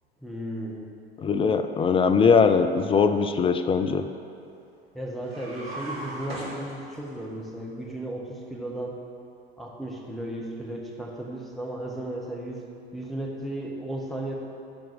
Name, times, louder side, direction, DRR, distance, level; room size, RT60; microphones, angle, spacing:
voice 1, 0.2-0.9 4.9-9.0 9.6-12.6 12.9-14.4, right 1 dB, ahead, -2 dB, 1.6 m, -35 dB
voice 2, 1.2-4.1, left 5 dB, 15° left, 8 dB, 0.5 m, -21 dB
sound 1, 5.2-7.3, right 1 dB, 75° right, 2.0 m, -38 dB
12.0 x 4.6 x 6.4 m, 2.5 s
figure-of-eight pair, 75°, 31 cm